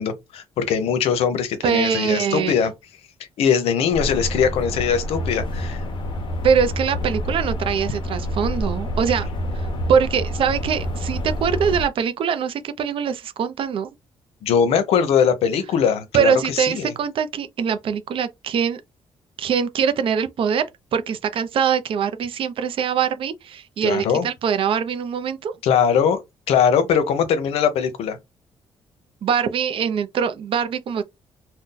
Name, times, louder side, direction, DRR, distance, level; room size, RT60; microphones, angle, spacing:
voice 1, 0.0-2.7 3.4-5.8 14.4-16.9 23.8-24.3 25.6-26.2 26.5-28.2, left 7 dB, 85° left, 0.7 m, -21 dB
voice 2, 1.6-2.5 6.4-9.3 9.6-13.9 16.1-18.8 19.4-20.6 20.9-25.5 29.2-31.0, right 7 dB, 60° right, 0.5 m, -23 dB
sound 1, 3.9-11.8, equal, 55° left, 0.8 m, -27 dB
2.6 x 2.1 x 3.7 m
cardioid pair, 105°, 10 cm